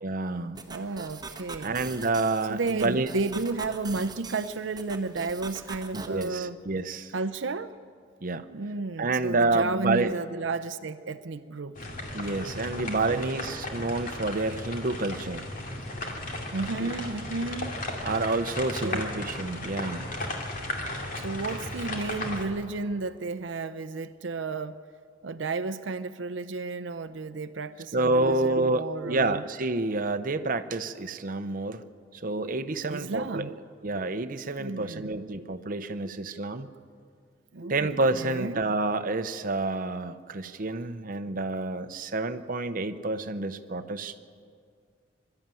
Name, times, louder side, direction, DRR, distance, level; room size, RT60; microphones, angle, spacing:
voice 1, 0.0-0.6 1.6-3.1 5.9-7.1 8.2-8.5 9.0-10.2 12.1-15.4 18.0-20.1 27.9-31.8 32.1-33.5 33.8-36.7 37.6-44.1, right 2 dB, 45° right, 8 dB, 0.8 m, -28 dB
sound 1, 0.6-6.3, right 4 dB, 20° right, 1.2 m, -42 dB
voice 2, 0.7-1.8 2.5-6.6 7.1-7.7 8.5-11.8 12.8-13.4 16.5-17.7 18.8-19.1 21.1-24.8 25.2-29.4 32.9-33.6 34.6-35.1 37.5-38.7, right 3 dB, 80° right, 10 dB, 0.6 m, -33 dB
sound 2, 11.7-22.5, left 1 dB, 45° left, 2.5 m, -35 dB
23.0 x 12.5 x 9.1 m, 2.2 s
head